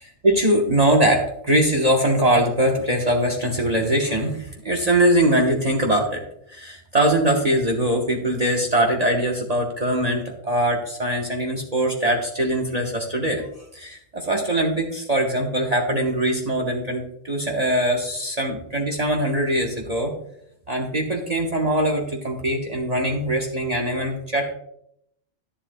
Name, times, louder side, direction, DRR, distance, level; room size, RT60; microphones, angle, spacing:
voice 1, 0.0-6.2 6.5-13.4 13.7-20.1 20.7-24.5, right 1 dB, 35° right, 0 dB, 1.1 m, -22 dB
11.0 x 10.5 x 2.2 m, 0.73 s
omnidirectional pair, 1.3 m